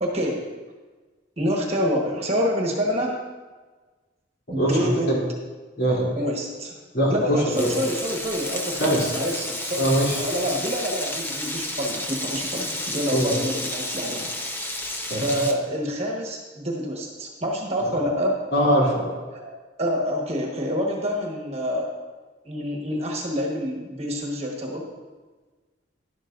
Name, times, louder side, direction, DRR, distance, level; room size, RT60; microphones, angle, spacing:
voice 1, 0.0-0.4 1.4-3.2 4.5-5.2 6.2-6.8 7.1-14.3 15.1-18.4 19.3-19.5 19.8-21.9 22.4-24.9, equal, 35° right, -1 dB, 1.4 m, -27 dB
voice 2, 4.6-5.2 5.8-6.1 6.9-7.7 8.8-9.1 9.8-10.2 13.1-13.4 15.1-15.2 17.8-17.9 18.5-19.1, right 1 dB, 55° left, -5 dB, 3.0 m, -22 dB
Frying (food), 7.5-15.5, left 1 dB, 10° left, 0.6 m, -31 dB
11.5 x 11.5 x 2.6 m, 1.3 s
head